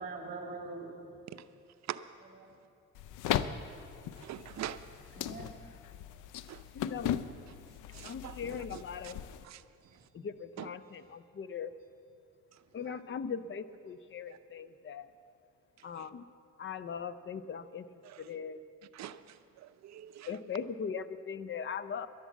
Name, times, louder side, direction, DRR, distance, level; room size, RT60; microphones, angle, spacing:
voice 1, 0.0-1.2 2.2-2.6 5.1-6.3 9.8-10.0, right 3 dB, 30° right, 1 dB, 2.8 m, -45 dB
sound 1, 2.9-9.5, left 10 dB, 85° left, 0.5 m, -38 dB
voice 2, 4.2-4.8 6.5-6.6 7.9-8.4 8.7-9.1 9.4-9.6 10.6-10.7 12.9-13.0 14.3-14.4 16.0-16.1 18.0-18.3 18.9-20.4, right 11 dB, 60° right, 12 dB, 0.6 m, -44 dB
voice 3, 6.7-7.3 8.0-9.2 10.1-11.7 12.7-15.1 15.8-16.2 16.6-17.8 18.2-18.6 20.3-22.1, left 6 dB, 40° left, 14 dB, 0.6 m, -40 dB
11.5 x 11.0 x 7.3 m, 2.5 s
cardioid pair, 90°, 30 cm